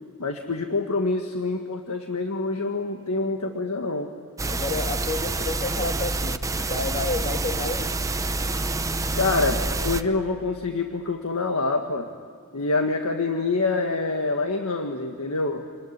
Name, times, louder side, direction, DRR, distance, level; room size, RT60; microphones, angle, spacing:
voice 1, 0.2-4.1 9.2-12.1 12.5-15.7, left 3 dB, 80° left, 3 dB, 1.7 m, -26 dB
sound 1, 4.4-10.0, right 2 dB, 15° right, 0.7 m, -27 dB
voice 2, 4.5-8.0, left 3 dB, 35° left, 5 dB, 1.9 m, -30 dB
28.0 x 21.0 x 9.7 m, 2.2 s
head